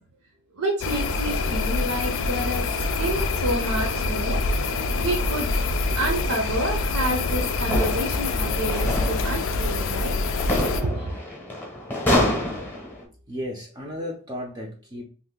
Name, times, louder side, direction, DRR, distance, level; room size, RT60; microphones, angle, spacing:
voice 1, 0.6-2.6 3.0-4.4 5.0-5.6 5.9-10.1 10.8-11.2, right 1 dB, 70° right, 1 dB, 0.6 m, -29 dB
sound 1, 0.8-10.8, left 3 dB, 60° left, 0.4 m, -25 dB
sound 2, 7.1-13.0, left 1 dB, 10° left, 0.8 m, -28 dB
voice 2, 13.3-15.0, left 1 dB, 20° right, -1 dB, 0.4 m, -34 dB
2.7 x 2.5 x 3.6 m, 0.41 s
head